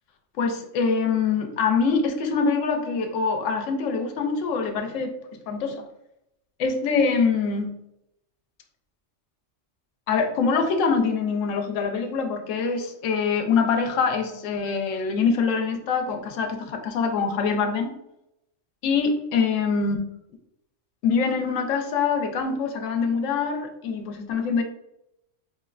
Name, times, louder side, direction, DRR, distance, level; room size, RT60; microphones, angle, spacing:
voice 1, 0.4-5.2 5.5-5.8 6.6-7.7 10.1-17.9 18.8-20.0 21.0-24.6, left 5 dB, 90° left, 5 dB, 0.9 m, -24 dB
5.0 x 2.1 x 2.3 m, 0.83 s
omnidirectional pair, 1.3 m